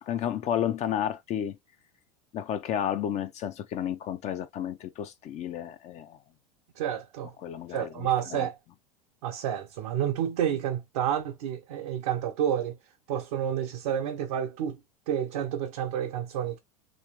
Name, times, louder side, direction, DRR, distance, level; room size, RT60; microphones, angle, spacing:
voice 1, 0.0-1.6 2.3-6.2 7.4-8.5, left 10 dB, 35° left, 0.5 m, -32 dB
voice 2, 6.8-7.3 7.7-8.5 9.2-12.8 13.1-14.8 15.1-16.6, right 9 dB, 65° right, 0.8 m, -29 dB
3.1 x 3.0 x 2.9 m
hypercardioid pair, 85°, 19 cm